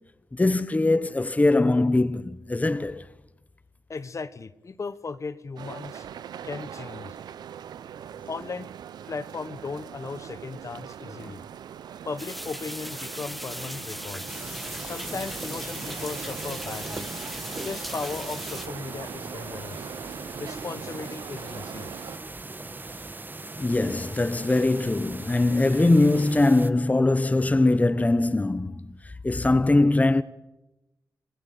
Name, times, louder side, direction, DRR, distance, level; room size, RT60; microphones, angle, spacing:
voice 1, 0.3-3.1 11.2-11.3 23.6-30.2, left 2 dB, 20° left, 1.1 m, -22 dB
voice 2, 3.9-6.1 6.4-7.2 8.3-8.7 9.1-11.4 12.1-14.2 14.8-17.1 17.6-19.9 20.4-21.9, left 4 dB, 45° left, 1.2 m, -36 dB
sound 1, 5.6-22.2, right 9 dB, 85° right, 0.8 m, -41 dB
sound 2, 12.2-18.7, equal, ahead, 1.9 m, -38 dB
sound 3, 14.3-26.7, right 2 dB, 25° right, 1.4 m, -39 dB
27.5 x 16.0 x 8.5 m
cardioid pair, 55°, 7 cm